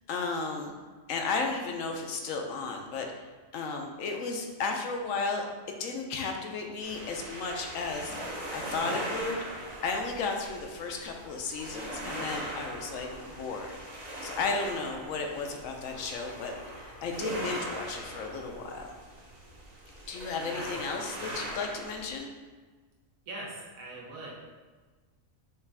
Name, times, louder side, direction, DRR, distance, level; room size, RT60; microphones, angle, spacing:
voice 1, 0.1-0.7 1.1-3.3 3.5-13.7 14.2-18.9 20.1-22.3, left 4 dB, 75° left, 3 dB, 0.9 m, -34 dB
sound 1, 6.8-22.2, right 1 dB, 35° right, 0.8 m, -40 dB
voice 2, 20.4-20.8 23.3-24.3, right 1 dB, 75° right, -4 dB, 1.4 m, -41 dB
5.5 x 2.5 x 3.3 m, 1.4 s
omnidirectional pair, 1.4 m